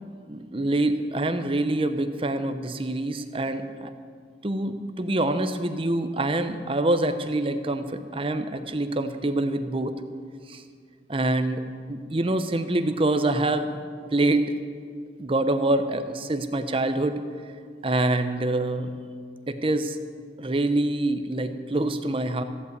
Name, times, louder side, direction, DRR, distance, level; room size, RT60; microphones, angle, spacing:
voice 1, 0.3-3.9 4.4-9.9 10.5-10.6 11.1-11.6 11.9-13.7 14.1-14.5 15.2-17.2 17.8-18.9 19.5-20.0 20.4-22.4, right 2 dB, 30° right, 9 dB, 0.7 m, -25 dB
14.5 x 8.0 x 8.1 m, 2.1 s
head